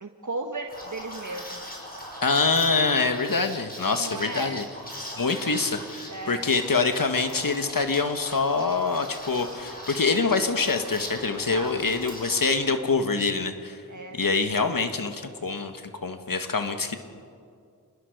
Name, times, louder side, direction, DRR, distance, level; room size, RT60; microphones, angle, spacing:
voice 1, 0.0-1.6 4.0-4.6 6.1-6.4 11.4-11.8 13.9-14.2, right 3 dB, 55° right, 3 dB, 1.4 m, -35 dB
Liquid, 0.7-12.5, equal, 25° left, 6.2 m, -40 dB
voice 2, 2.2-4.6 5.2-13.8 14.1-17.0, left 4 dB, 65° left, 7 dB, 1.6 m, -25 dB
27.0 x 20.5 x 6.6 m, 2.3 s
wide cardioid pair, 55°, 36 cm